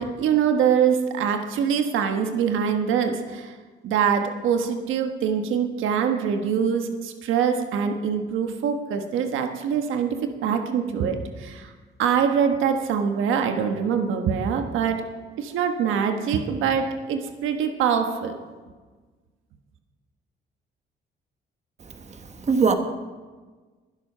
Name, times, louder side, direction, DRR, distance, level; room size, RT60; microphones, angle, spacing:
voice 1, 0.0-3.5 3.8-11.7 12.0-15.1 15.4-18.4, right 7 dB, 85° right, 5 dB, 1.3 m, -24 dB
voice 2, 22.1-22.7, right 5 dB, 35° right, 6 dB, 1.4 m, -22 dB
21.5 x 7.6 x 5.6 m, 1.4 s
cardioid pair, 90°, 20 cm